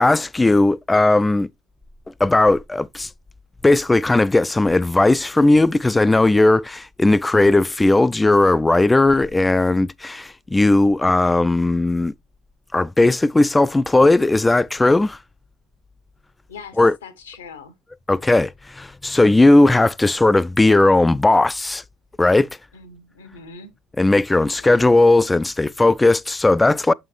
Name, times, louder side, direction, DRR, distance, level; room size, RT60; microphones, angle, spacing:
voice 1, 0.0-1.5 2.2-3.1 3.6-12.1 12.7-15.2 16.8-17.0 18.1-21.8 22.2-22.5 24.0-26.9, left 2 dB, 15° left, 0.3 m, -17 dB
voice 2, 16.5-17.7 22.7-23.7 24.5-25.0, left 5 dB, 85° left, 1.1 m, -41 dB
7.1 x 5.4 x 3.1 m
hypercardioid pair, 60°, 0 cm